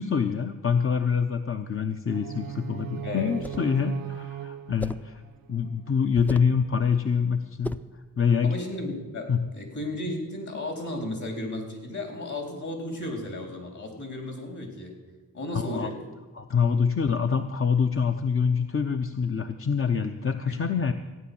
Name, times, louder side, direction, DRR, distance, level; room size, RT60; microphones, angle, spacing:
voice 1, 0.0-5.2 5.5-7.7 8.2-8.6 9.3-9.4 15.5-15.9 16.3-20.9, left 6 dB, 40° left, 6 dB, 0.8 m, -25 dB
sound 1, 2.0-6.1, right 11 dB, 80° right, 0.7 m, -39 dB
voice 2, 3.0-3.6 8.4-14.9 15.3-16.0 20.5-20.6, left 1 dB, 55° left, 3 dB, 4.1 m, -34 dB
sound 2, 3.3-3.7 4.8-5.1 6.2-6.6 7.6-8.0, left 1 dB, 5° left, 0.5 m, -37 dB
15.5 x 9.5 x 7.1 m, 1.3 s
cardioid pair, 70°, 34 cm